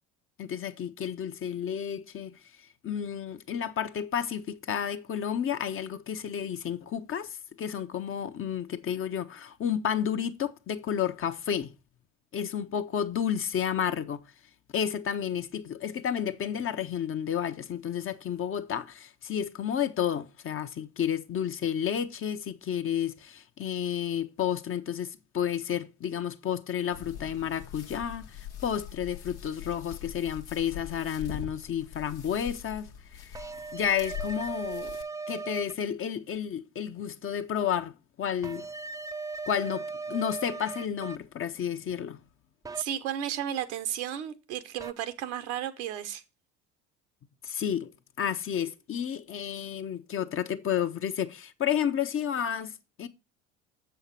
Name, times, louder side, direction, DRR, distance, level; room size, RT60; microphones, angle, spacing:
voice 1, 0.4-2.4 2.8-11.7 12.3-14.2 14.7-33.4 33.7-35.0 35.3-38.7 39.5-42.2 47.4-47.9 48.2-52.7 53.0-53.1, left 9 dB, 40° left, 0.9 m, -31 dB
sound 1, 26.9-35.0, left 9 dB, 80° left, 1.2 m, -43 dB
sound 2, 33.3-35.7 38.4-41.2 42.6-42.8 44.8-44.9, right 4 dB, 10° right, 0.6 m, -37 dB
voice 2, 42.8-46.2, right 10 dB, 70° right, 1.1 m, -33 dB
7.3 x 5.6 x 5.7 m
hypercardioid pair, 60°, 35 cm